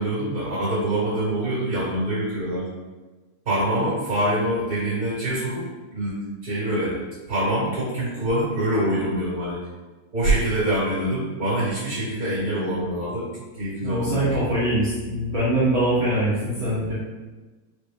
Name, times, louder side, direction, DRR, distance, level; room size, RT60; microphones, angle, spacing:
voice 1, 0.0-2.7 3.4-5.6 5.9-6.1 6.4-6.9 7.3-9.6 10.1-13.2 13.6-14.2, right 1 dB, 40° right, -8 dB, 1.3 m, -25 dB
voice 2, 13.8-16.9, right 1 dB, 90° right, -10 dB, 1.1 m, -23 dB
5.3 x 2.6 x 3.4 m, 1.2 s
omnidirectional pair, 3.6 m